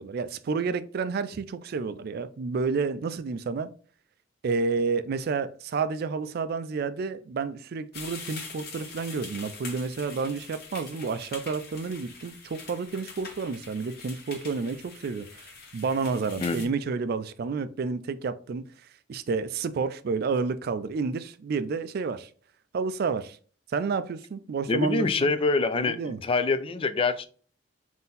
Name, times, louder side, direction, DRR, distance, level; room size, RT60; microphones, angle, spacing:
voice 1, 0.0-3.7 4.4-15.4 15.7-18.6 19.1-22.3 22.7-23.4 23.7-25.3 25.7-26.2, right 4 dB, 55° right, 0.3 m, -30 dB
sound 1, 7.9-16.7, left 4 dB, 55° left, 1.0 m, -44 dB
voice 2, 24.7-27.3, left 4 dB, 30° left, 0.3 m, -25 dB
3.7 x 2.7 x 4.0 m
head